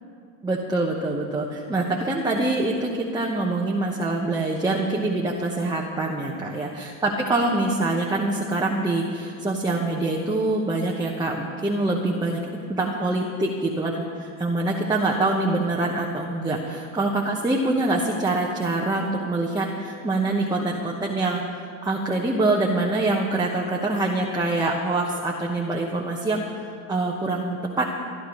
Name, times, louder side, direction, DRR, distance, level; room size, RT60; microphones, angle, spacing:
voice 1, 0.4-12.4 12.7-27.8, right 2 dB, 10° right, -2 dB, 1.2 m, -25 dB
23.5 x 11.5 x 3.2 m, 2.4 s
supercardioid pair, 115°, 43 cm